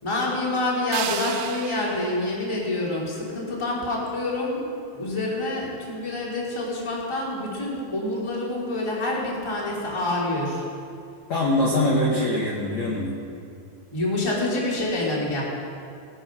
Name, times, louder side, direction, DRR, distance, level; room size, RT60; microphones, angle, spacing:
voice 1, 0.0-4.7 4.9-10.7 13.9-15.4, left 2 dB, 10° left, -4 dB, 2.0 m, -27 dB
sound 1, 0.9-3.9, right 11 dB, 80° right, 2.3 m, -36 dB
voice 2, 11.3-13.2, left 1 dB, 55° left, -4 dB, 2.1 m, -23 dB
19.5 x 9.5 x 6.1 m, 2.5 s
omnidirectional pair, 4.8 m